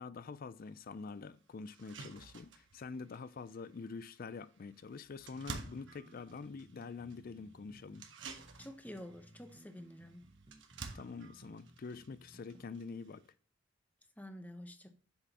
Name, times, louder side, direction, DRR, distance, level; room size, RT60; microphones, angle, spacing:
voice 1, 0.0-8.0 10.9-13.2, left 4 dB, 45° left, 0.4 m, -46 dB
sound 1, 0.6-0.7 1.2-1.3 1.7-13.3, right 4 dB, 60° right, 1.2 m, -52 dB
sound 2, 5.3-12.7, right 1 dB, 25° right, 0.9 m, -61 dB
voice 2, 8.6-10.3 14.2-14.9, left 1 dB, 10° left, 0.8 m, -49 dB
7.9 x 6.1 x 2.9 m
head